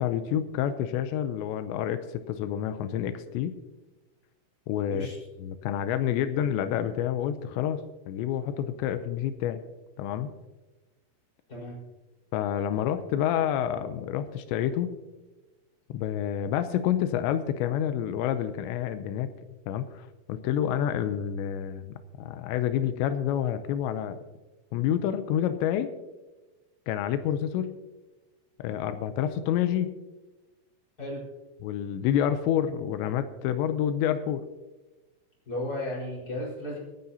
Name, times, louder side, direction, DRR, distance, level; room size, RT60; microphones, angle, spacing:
voice 1, 0.0-3.6 4.7-5.1 5.4-9.6 10.0-10.3 12.3-15.0 15.9-19.3 19.7-24.2 24.7-25.9 26.9-27.8 28.6-30.0 31.6-34.4, left 10 dB, 90° left, 10 dB, 2.9 m, -28 dB
voice 2, 35.4-36.8, left 1 dB, 20° left, -5 dB, 4.9 m, -34 dB
27.0 x 9.4 x 2.8 m, 1.1 s
omnidirectional pair, 5.1 m